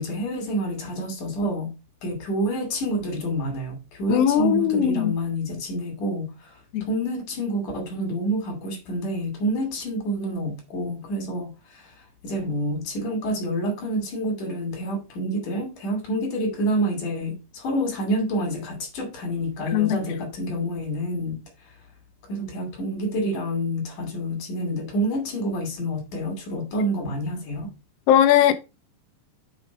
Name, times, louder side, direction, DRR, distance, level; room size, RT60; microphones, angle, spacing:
voice 1, 0.0-1.7 2.0-6.6 6.9-11.9 12.2-21.4 22.3-27.7, right 1 dB, 90° left, 4.3 m, -28 dB
voice 2, 4.1-5.1 6.7-6.9 19.7-20.0 28.1-28.5, left 10 dB, 70° left, 1.6 m, -19 dB
8.1 x 4.8 x 4.7 m
omnidirectional pair, 3.5 m